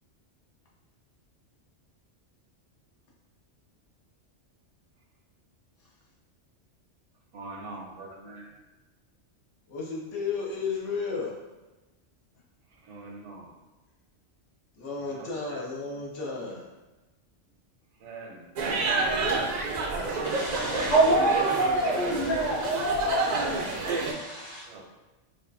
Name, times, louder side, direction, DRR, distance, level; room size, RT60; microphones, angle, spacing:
voice 1, 7.3-8.6 12.7-13.5 15.1-15.6 18.0-18.5 20.5-20.9 24.6-24.8, right 3 dB, 80° right, 0 dB, 1.0 m, -43 dB
voice 2, 9.7-11.4 14.7-16.7, left 4 dB, 80° left, -3 dB, 1.1 m, -33 dB
sound 1, 18.6-24.1, right 3 dB, 65° right, 0.4 m, -29 dB
voice 3, 20.2-24.6, right 2 dB, 60° left, -8 dB, 1.7 m, -26 dB
4.8 x 2.3 x 2.6 m, 1.1 s
omnidirectional pair, 1.2 m